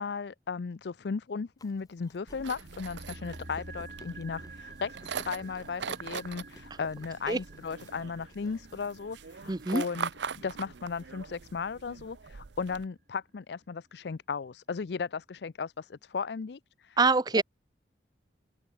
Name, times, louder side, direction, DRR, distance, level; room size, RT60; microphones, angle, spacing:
voice 1, 0.0-10.1 10.4-17.0 17.3-17.4, left 5 dB, 70° left, 0.5 m, -36 dB
Chewing mastication, 1.6-8.8, left 1 dB, 20° left, 3.8 m, -58 dB
sound 1, 2.3-12.8, right 6 dB, 80° right, 0.7 m, -42 dB
sound 2, 2.6-12.9 13.1-13.2, right 2 dB, 50° right, 7.0 m, -50 dB
voice 2, 9.5-9.8 17.0-17.4, right 3 dB, 25° right, 0.5 m, -24 dB
head